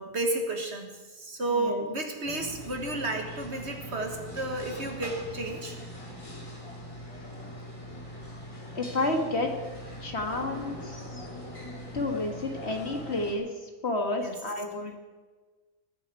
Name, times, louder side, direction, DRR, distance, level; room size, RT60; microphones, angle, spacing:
voice 1, 0.0-5.8 14.2-14.3, right 2 dB, 45° right, 3 dB, 1.8 m, -32 dB
voice 2, 1.5-1.9 8.8-9.5 10.0-11.3 11.9-15.0, left 2 dB, 45° left, 3 dB, 1.8 m, -31 dB
sound 1, 2.2-13.4, equal, 20° left, 2.4 m, -41 dB
20.5 x 8.3 x 5.1 m, 1.3 s
omnidirectional pair, 1.6 m